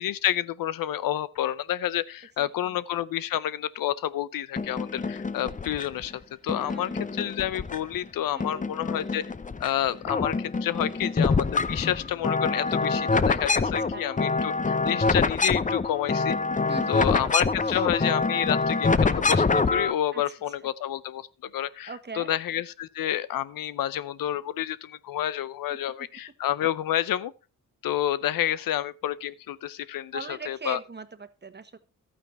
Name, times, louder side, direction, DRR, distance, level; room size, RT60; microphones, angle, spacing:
voice 1, 0.0-9.2 9.6-16.4 16.9-27.3 27.8-30.8, left 12 dB, 85° left, 0.6 m, -29 dB
voice 2, 2.4-2.8 6.6-7.1 8.3-8.7 13.9-14.1 16.7-17.1 17.6-17.8 20.1-20.2 21.8-22.3 25.8-26.1 30.1-31.8, right 4 dB, 30° right, 1.3 m, -41 dB
sound 1, 4.6-6.0 6.5-8.1 8.4-9.7 10.0-19.9, left 4 dB, 25° left, 0.7 m, -26 dB
12.0 x 8.9 x 4.1 m
cardioid pair, 65°, 33 cm